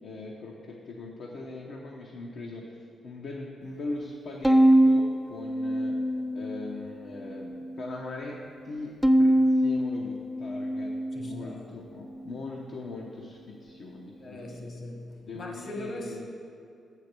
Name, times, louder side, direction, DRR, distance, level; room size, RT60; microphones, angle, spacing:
voice 1, 0.0-2.6 3.0-6.0 6.3-8.4 8.6-10.9 11.2-14.6 15.2-16.3, left 2 dB, 70° left, -1 dB, 0.8 m, -40 dB
Bowed string instrument, 4.4-6.8 7.3-8.0 9.0-11.5, right 1 dB, ahead, 0.3 m, -24 dB
voice 2, 11.1-11.7 14.2-16.4, left 1 dB, 50° left, 1 dB, 1.2 m, -40 dB
6.9 x 4.6 x 6.7 m, 2.6 s
cardioid pair, 95°, 0 cm